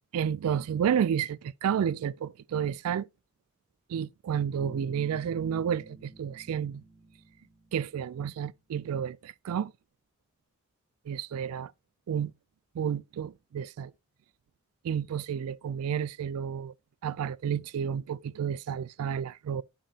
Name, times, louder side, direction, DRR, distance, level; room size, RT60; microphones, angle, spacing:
voice 1, 0.1-3.1 3.9-6.8 7.7-9.7 11.1-11.7 12.1-12.3 12.7-13.9 14.8-16.7 17.0-19.6, right 8 dB, 85° right, 0.3 m, -31 dB
Bass guitar, 4.6-8.4, right 1 dB, 15° right, 2.9 m, -50 dB
10.5 x 4.8 x 2.8 m
head